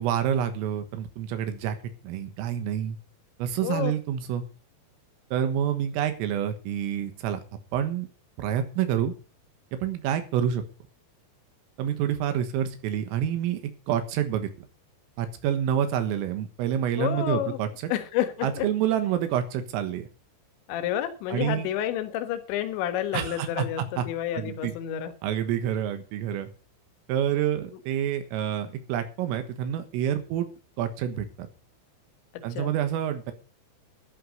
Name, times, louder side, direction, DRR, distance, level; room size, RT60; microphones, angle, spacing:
voice 1, 0.0-1.8 2.0-3.0 3.4-4.4 5.3-7.4 7.7-8.1 8.4-9.1 9.7-10.6 11.8-14.5 15.2-17.9 18.4-20.1 21.3-21.7 23.1-24.1 24.3-24.7 25.2-26.5 27.1-30.5 30.8-31.5 32.4-33.3, right 9 dB, 85° right, 8 dB, 4.0 m, -28 dB
voice 2, 17.0-17.6 17.9-18.7 20.7-25.1 32.3-32.7, left 11 dB, 70° left, 8 dB, 3.5 m, -30 dB
11.5 x 11.5 x 5.4 m, 0.36 s
omnidirectional pair, 5.9 m